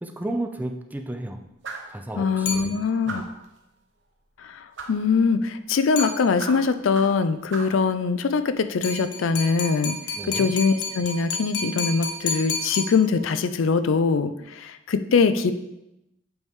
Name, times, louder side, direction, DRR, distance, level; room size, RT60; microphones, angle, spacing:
voice 1, 0.0-1.4 1.9-3.2 10.2-10.5, right 1 dB, 10° right, 5 dB, 0.5 m, -33 dB
sound 1, 1.6-2.0 3.1-3.4 4.8-5.0 6.0-7.2 7.5-7.8, right 3 dB, 65° right, 0.9 m, -36 dB
voice 2, 2.2-3.2 4.4-10.0 10.3-15.5, left 5 dB, 85° left, 11 dB, 0.4 m, -23 dB
sound 2, 2.5-3.2 6.0-6.7 8.8-13.5, left 3 dB, 65° left, 1.2 m, -32 dB
8.0 x 4.6 x 3.6 m, 0.89 s
head